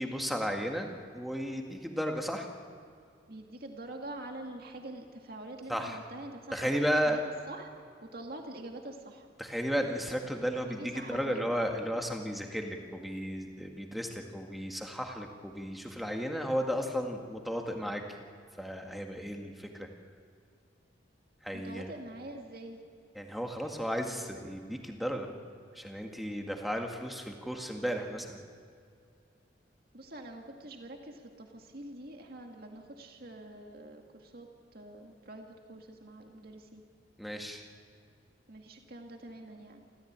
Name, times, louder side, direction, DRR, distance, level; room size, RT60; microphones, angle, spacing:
voice 1, 0.0-2.5 5.7-6.0 6.5-7.2 9.4-18.0 18.6-19.9 21.4-21.9 23.1-25.3 25.7-28.4 37.2-37.6, equal, ahead, 2 dB, 1.8 m, -34 dB
voice 2, 3.3-7.2 7.5-7.7 8.0-9.3 10.7-11.6 21.5-22.8 29.9-36.8 38.5-39.8, right 1 dB, 50° right, 3 dB, 2.2 m, -45 dB
28.0 x 14.5 x 8.8 m, 2.3 s
head